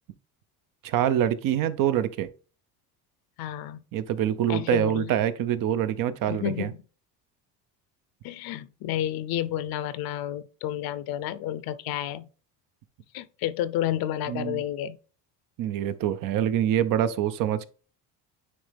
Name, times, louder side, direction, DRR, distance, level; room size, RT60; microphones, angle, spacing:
voice 1, 0.8-2.3 3.9-6.7 14.3-14.6 15.6-17.6, right 10 dB, 55° right, 0.7 m, -25 dB
voice 2, 3.4-3.8 4.5-5.1 6.3-6.8 8.2-12.3 13.1-15.0, left 12 dB, 65° left, 0.7 m, -31 dB
9.5 x 3.2 x 3.4 m
cardioid pair, 135°, 38 cm